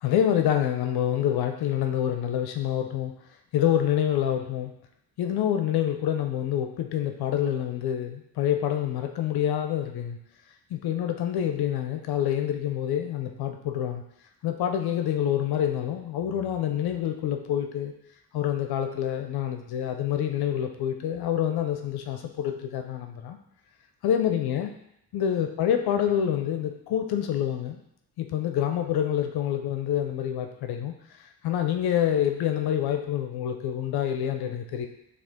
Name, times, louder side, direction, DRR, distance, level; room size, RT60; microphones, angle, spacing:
voice 1, 0.0-3.1 3.5-4.7 5.2-10.2 10.7-14.0 14.4-17.9 18.3-23.4 24.0-24.7 25.1-27.8 28.2-34.9, left 10 dB, 70° left, 5 dB, 0.5 m, -27 dB
6.1 x 2.4 x 3.6 m, 0.79 s
cardioid pair, 120°, 39 cm